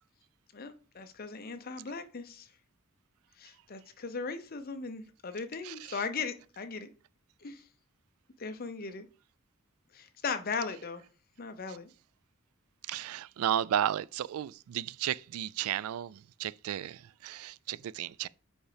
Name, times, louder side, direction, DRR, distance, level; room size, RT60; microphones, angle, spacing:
voice 1, 0.5-2.5 3.4-6.9 7.4-7.6 8.4-9.1 9.9-11.0 11.4-11.9, left 5 dB, 45° left, 0.7 m, -38 dB
voice 2, 12.9-18.3, right 10 dB, 85° right, 0.3 m, -33 dB
5.2 x 5.0 x 5.0 m
head